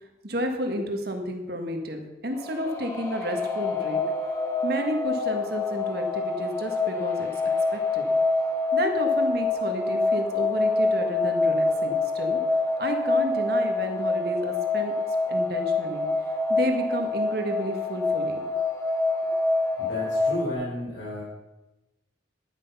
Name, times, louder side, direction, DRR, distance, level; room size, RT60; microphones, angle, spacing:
voice 1, 0.2-4.0 4.6-7.3 7.7-8.0 8.7-12.4 12.8-14.9 15.3-16.1 16.5-18.5, equal, 55° right, 4 dB, 1.7 m, -31 dB
sound 1, 2.4-20.5, left 3 dB, 15° left, 1.4 m, -26 dB
voice 2, 19.8-21.2, left 1 dB, 80° left, -8 dB, 4.9 m, -33 dB
10.5 x 10.0 x 5.6 m, 1.0 s
head